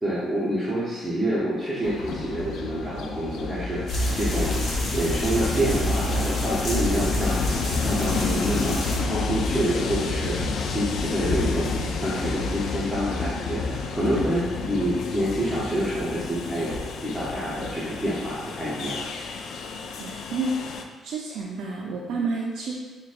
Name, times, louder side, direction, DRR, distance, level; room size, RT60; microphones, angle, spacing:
voice 1, 0.0-4.6 4.9-8.8 9.1-11.8 12.0-16.8 17.0-19.0, right 1 dB, 5° right, -10 dB, 0.8 m, -27 dB
Train, 1.8-20.8, left 4 dB, 75° left, 0.3 m, -30 dB
sound 1, 3.9-9.0, equal, 50° left, 0.8 m, -29 dB
voice 2, 19.9-20.6 21.0-22.7, right 3 dB, 80° right, -3 dB, 0.4 m, -30 dB
5.8 x 2.2 x 2.5 m, 1.3 s
cardioid pair, 90°, 0 cm